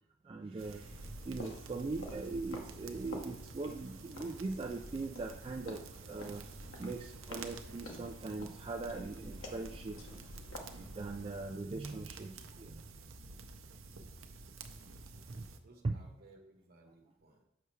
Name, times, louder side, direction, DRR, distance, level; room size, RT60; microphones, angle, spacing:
voice 1, 0.2-6.4 6.8-10.1 10.5-12.9 15.3-15.5 15.8-16.0, right 3 dB, 25° right, 3 dB, 0.3 m, -41 dB
sound 1, 0.6-15.6, right 3 dB, 80° right, 0.6 m, -51 dB
sound 2, 0.7-11.6, left 1 dB, 90° left, 1.0 m, -50 dB
voice 2, 13.9-14.3 14.8-15.1 15.6-17.4, right 2 dB, 50° right, 2 dB, 1.1 m, -62 dB
6.8 x 5.6 x 3.2 m, 0.83 s
head